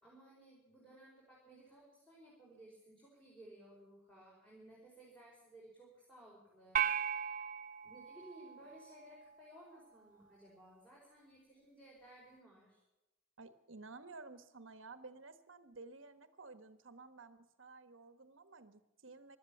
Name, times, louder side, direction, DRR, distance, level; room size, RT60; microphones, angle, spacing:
voice 1, 0.0-7.4 7.8-12.8, right 1 dB, 5° left, -5 dB, 5.2 m, -58 dB
sound 1, 6.8-9.2, right 8 dB, 40° right, 0.6 m, -37 dB
voice 2, 13.4-19.4, right 3 dB, 70° right, 12 dB, 1.4 m, -54 dB
16.5 x 12.5 x 7.1 m, 0.99 s
head